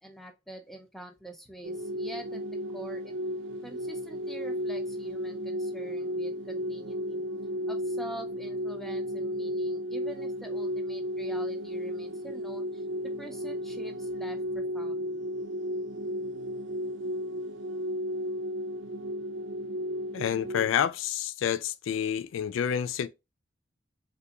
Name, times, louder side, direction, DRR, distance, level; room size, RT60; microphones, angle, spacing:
voice 1, 0.0-2.4 2.7-3.1 3.6-7.2 7.7-15.2, right 1 dB, ahead, 0.5 m, -45 dB
sound 1, 1.6-20.7, equal, 65° right, 0.6 m, -34 dB
voice 2, 20.1-23.1, left 9 dB, 80° left, 0.3 m, -28 dB
3.3 x 2.5 x 2.8 m
head